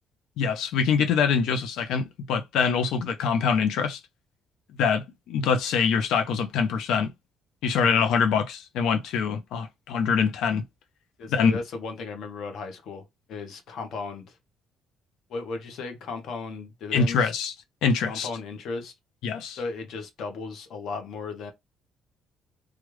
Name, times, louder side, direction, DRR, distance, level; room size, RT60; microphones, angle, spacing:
voice 1, 0.4-4.0 4.8-7.1 7.6-10.6 11.3-11.5 16.9-17.5 17.8-18.3 19.2-19.6, left 6 dB, 85° left, 0.7 m, -24 dB
voice 2, 11.2-13.0 13.3-14.3 15.3-17.3 18.1-18.9 19.6-21.5, left 4 dB, 60° left, 1.1 m, -35 dB
3.2 x 2.4 x 3.1 m
cardioid pair, 155°, 0 cm